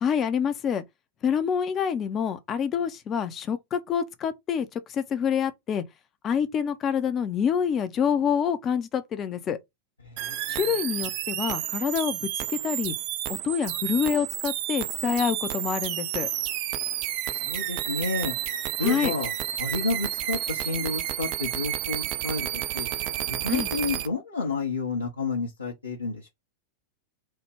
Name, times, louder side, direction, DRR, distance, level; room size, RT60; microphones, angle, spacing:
voice 1, 0.0-0.8 1.2-5.8 6.2-9.6 10.5-12.9 13.3-16.3 18.8-19.1 23.5-23.7, left 7 dB, 30° left, 0.5 m, -27 dB
voice 2, 10.0-10.8 17.3-18.3 18.8-19.3 19.6-22.9 23.3-26.3, left 3 dB, 80° left, 0.7 m, -30 dB
sound 1, 10.2-24.1, right 12 dB, 45° right, 0.4 m, -31 dB
3.1 x 2.1 x 3.3 m
figure-of-eight pair, 90°, 0 cm